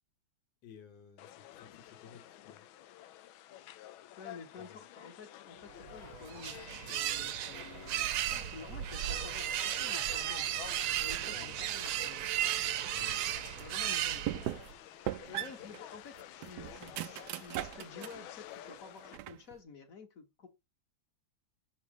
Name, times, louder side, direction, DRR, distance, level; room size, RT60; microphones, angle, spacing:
voice 1, 0.6-2.7 4.6-4.8 11.2-11.9 12.9-13.5, left 6 dB, 65° left, 2.0 m, -56 dB
sound 1, 1.2-19.2, left 13 dB, 90° left, 1.4 m, -50 dB
voice 2, 4.2-6.6 6.9-12.3 13.6-14.5 15.3-20.5, left 5 dB, 45° left, 1.7 m, -51 dB
sound 2, 5.8-14.7, right 12 dB, 90° right, 1.5 m, -35 dB
sound 3, 11.0-11.5 12.0-13.0 13.6-13.7 14.3-14.8 15.1-18.3 18.6-19.6, right 13 dB, 75° right, 1.0 m, -40 dB
6.4 x 4.1 x 4.8 m
omnidirectional pair, 2.2 m